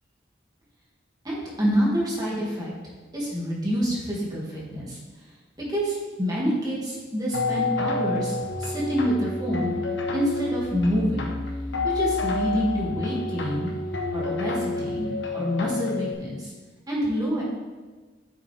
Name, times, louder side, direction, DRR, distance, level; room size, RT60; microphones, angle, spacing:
voice 1, 1.2-2.7 3.1-5.0 5.6-9.7 10.1-11.3 11.9-13.7 14.1-16.5 16.9-17.4, equal, 20° right, -6 dB, 2.6 m, -27 dB
sound 1, 7.3-16.1, left 3 dB, 80° left, 1.2 m, -29 dB
9.3 x 7.3 x 3.6 m, 1.3 s
head